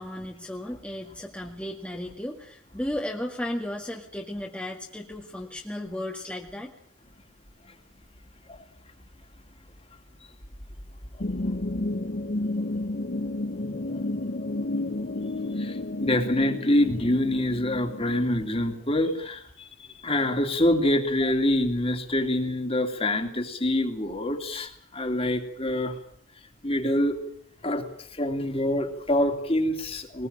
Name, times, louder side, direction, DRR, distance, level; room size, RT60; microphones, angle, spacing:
voice 1, 0.0-6.7, left 1 dB, 5° left, 0 dB, 1.8 m, -34 dB
sound 1, 11.2-18.7, left 2 dB, 45° left, 0.9 m, -31 dB
voice 2, 15.2-19.7 20.0-26.0 26.6-27.2 27.6-30.3, left 1 dB, 30° left, 5 dB, 2.8 m, -26 dB
21.0 x 20.5 x 8.9 m, 0.64 s
head